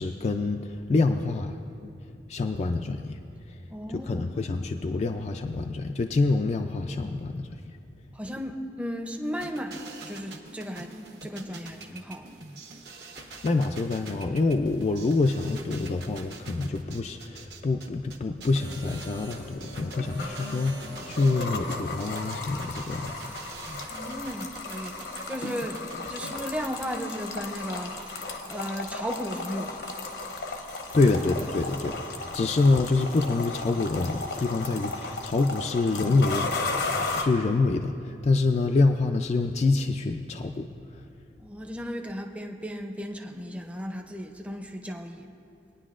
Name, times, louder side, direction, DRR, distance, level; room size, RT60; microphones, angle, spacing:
voice 1, 0.0-1.9 2.3-3.2 3.5-3.6 3.9-7.8 13.2-23.2 30.9-36.5 37.2-41.0, left 3 dB, 40° left, 5 dB, 0.3 m, -26 dB
voice 2, 3.7-4.5 8.1-10.9 11.2-12.4 23.9-29.9 41.4-45.3, equal, 10° right, 4 dB, 0.6 m, -35 dB
sound 1, 9.4-26.4, right 3 dB, 65° right, 1.2 m, -45 dB
sound 2, 18.4-19.6 20.0-21.2 21.5-22.7 23.1-24.2 24.6-25.8 26.1-27.2 27.5-28.9 29.2-30.3 30.6-32.0 32.4-33.5 33.8-35.1, right 4 dB, 85° right, 1.0 m, -52 dB
sound 3, 18.5-37.2, left 3 dB, 70° left, 0.9 m, -35 dB
20.0 x 9.8 x 2.5 m, 2.5 s
head